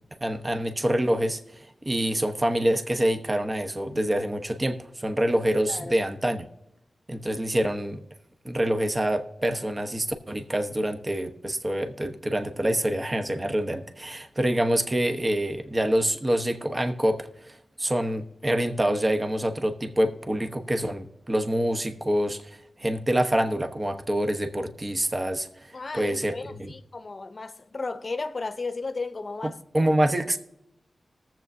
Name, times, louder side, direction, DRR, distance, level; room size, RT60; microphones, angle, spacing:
voice 1, 0.2-6.5 7.1-8.0 8.4-26.7 29.7-30.4, right 1 dB, 30° right, 1.1 m, -26 dB
voice 2, 5.6-6.0 25.7-29.6, left 3 dB, 50° left, 0.7 m, -34 dB
19.5 x 7.5 x 2.7 m
cardioid pair, 45°, 0 cm